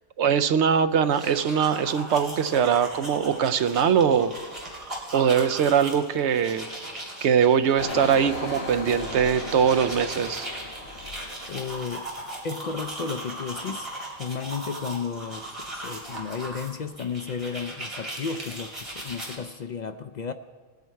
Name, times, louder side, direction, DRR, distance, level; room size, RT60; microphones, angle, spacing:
voice 1, 0.2-4.3 5.1-6.7 7.2-10.5, right 7 dB, 65° right, 11 dB, 0.9 m, -22 dB
sound 1, 1.0-19.4, right 1 dB, 25° right, 2.8 m, -38 dB
Engine, 7.8-12.4 12.8-13.2, left 1 dB, 45° left, 2.0 m, -37 dB
voice 2, 11.5-12.1 12.4-13.9 14.2-20.3, left 6 dB, 70° left, 9 dB, 0.4 m, -33 dB
20.5 x 9.4 x 4.6 m, 1.5 s
omnidirectional pair, 1.3 m